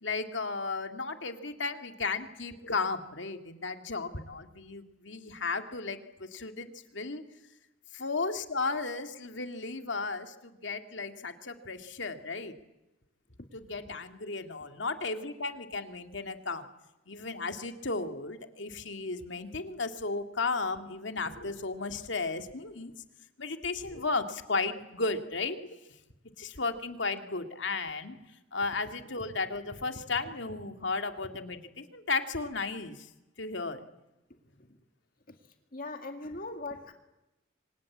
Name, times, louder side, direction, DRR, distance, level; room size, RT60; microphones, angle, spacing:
voice 1, 0.0-7.2 7.9-12.5 13.5-16.7 17.1-22.9 23.4-25.8 26.4-28.2 28.5-33.1 33.4-33.8, left 3 dB, 75° left, 7 dB, 2.2 m, -34 dB
voice 2, 35.7-36.9, left 2 dB, 45° left, 5 dB, 2.1 m, -40 dB
27.5 x 25.0 x 8.6 m, 0.98 s
head